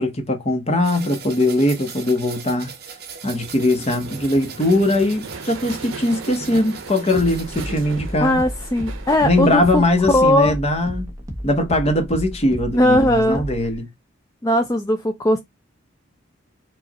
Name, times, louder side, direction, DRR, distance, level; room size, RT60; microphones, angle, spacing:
voice 1, 0.0-2.7 3.2-8.4 9.2-11.1 11.4-13.9, left 1 dB, 30° left, 1.0 m, -20 dB
sound 1, 0.8-7.7, right 6 dB, 55° right, 1.1 m, -39 dB
sound 2, 3.2-9.6, right 4 dB, 90° right, 0.7 m, -37 dB
sound 3, 5.1-13.8, equal, 15° right, 1.0 m, -34 dB
voice 2, 8.2-10.6 12.7-13.4 14.4-15.4, left 1 dB, 15° left, 0.4 m, -18 dB
4.9 x 2.5 x 4.0 m
head